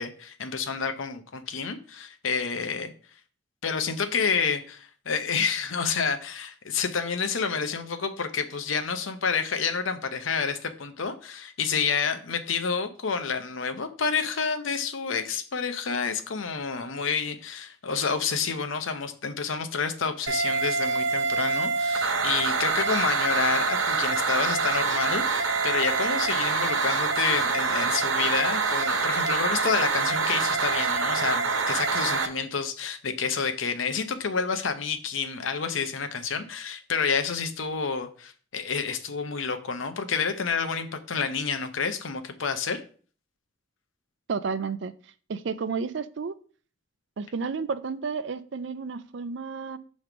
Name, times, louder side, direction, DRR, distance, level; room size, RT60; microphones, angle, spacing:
voice 1, 0.0-2.9 3.6-42.8, left 5 dB, 85° left, 0.7 m, -29 dB
sound 1, 20.3-32.3, right 4 dB, 85° right, 0.8 m, -25 dB
voice 2, 44.3-44.9 45.3-46.3 47.2-49.8, right 5 dB, 65° right, 0.4 m, -31 dB
5.9 x 3.1 x 5.1 m
head